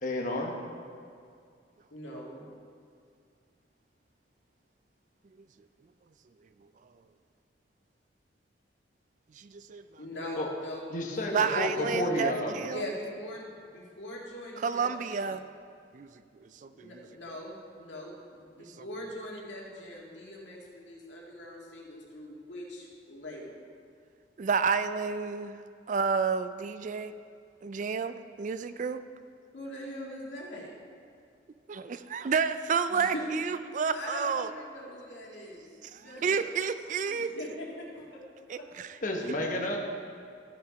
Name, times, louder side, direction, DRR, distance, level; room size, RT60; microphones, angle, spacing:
voice 1, 0.0-0.5 10.4-10.5 10.9-12.6 39.0-39.8, left 1 dB, 45° left, 1 dB, 1.1 m, -31 dB
voice 2, 1.9-2.4 10.0-11.9 12.7-15.3 16.7-23.6 29.5-30.7 32.9-33.3 33.9-36.4 37.1-38.2 38.5-38.7, left 1 dB, 75° left, -3 dB, 2.1 m, -41 dB
voice 3, 9.4-9.8 11.3-12.8 14.6-15.4 15.9-16.1 16.6-16.9 24.4-25.6 25.9-27.1 27.6-29.0 31.7-34.5 35.9-37.3 38.5-38.9, right 5 dB, 40° right, 12 dB, 0.3 m, -30 dB
13.5 x 6.5 x 5.0 m, 2.3 s
head